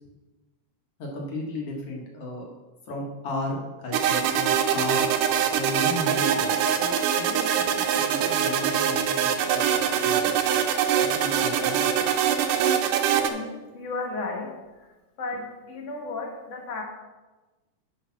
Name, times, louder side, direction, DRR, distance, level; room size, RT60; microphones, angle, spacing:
voice 1, 1.0-2.5 2.9-5.1 5.5-10.3 10.9-11.8, left 2 dB, 55° left, -1 dB, 2.1 m, -35 dB
sound 1, 3.9-13.3, right 8 dB, 80° right, 2.2 m, -23 dB
voice 2, 13.1-14.9 15.2-16.8, left 3 dB, 70° left, -1 dB, 0.6 m, -34 dB
8.8 x 5.1 x 5.8 m, 1.1 s
omnidirectional pair, 3.8 m